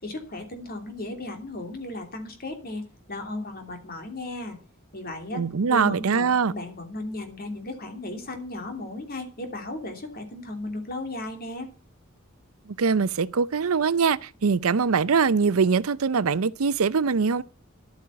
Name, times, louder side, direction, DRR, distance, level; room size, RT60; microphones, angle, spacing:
voice 1, 0.0-4.6 4.9-11.7, left 2 dB, 45° left, 3.0 m, -35 dB
voice 2, 5.3-6.5 12.8-17.4, right 5 dB, 90° right, 0.6 m, -22 dB
11.5 x 8.7 x 5.7 m
head